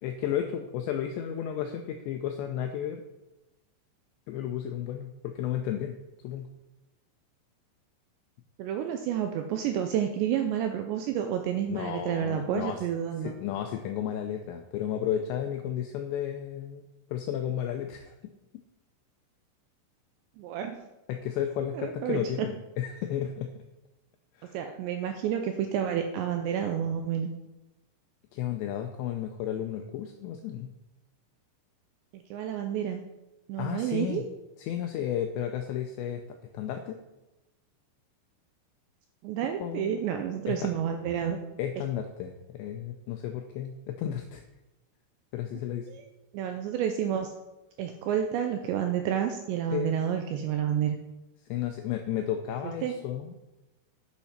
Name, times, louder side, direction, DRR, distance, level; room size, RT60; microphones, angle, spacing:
voice 1, 0.0-3.0 4.3-6.0 6.2-6.5 11.7-12.8 13.2-16.8 17.1-18.1 21.1-23.5 24.3-24.6 28.3-30.7 33.6-34.2 34.6-36.2 36.5-37.0 39.6-40.0 40.5-40.7 41.6-44.4 45.3-45.9 49.7-50.0 51.5-53.3, left 10 dB, 85° left, 5 dB, 2.5 m, -33 dB
voice 2, 8.6-13.3 20.4-20.8 21.7-22.5 24.5-27.3 32.1-33.0 33.5-34.3 39.2-41.4 45.9-46.0 46.3-47.3 47.8-51.0 52.8-52.9, right 9 dB, 85° right, 5 dB, 2.6 m, -30 dB
9.5 x 7.1 x 5.8 m, 1.0 s
omnidirectional pair, 5.8 m